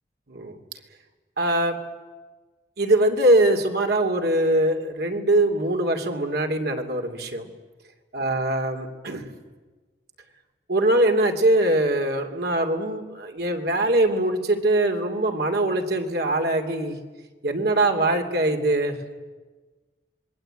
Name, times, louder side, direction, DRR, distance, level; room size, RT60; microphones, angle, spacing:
voice 1, 1.4-1.8 2.8-7.5 8.1-9.3 10.7-16.9 17.4-19.1, right 1 dB, 65° right, 4 dB, 2.9 m, -22 dB
27.0 x 21.5 x 9.0 m, 1.3 s
head